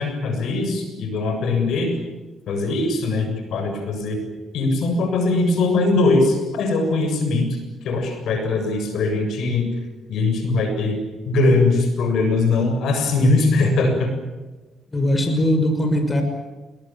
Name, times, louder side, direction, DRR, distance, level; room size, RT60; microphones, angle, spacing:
voice 1, 0.0-2.0 2.5-4.2 4.5-7.6 7.8-9.7 10.1-11.0 11.3-14.1, left 3 dB, 75° left, 6 dB, 7.5 m, -21 dB
voice 2, 14.9-16.2, left 1 dB, 25° left, 6 dB, 5.9 m, -20 dB
29.0 x 22.5 x 7.6 m, 1.2 s
cardioid pair, 90°, 0 cm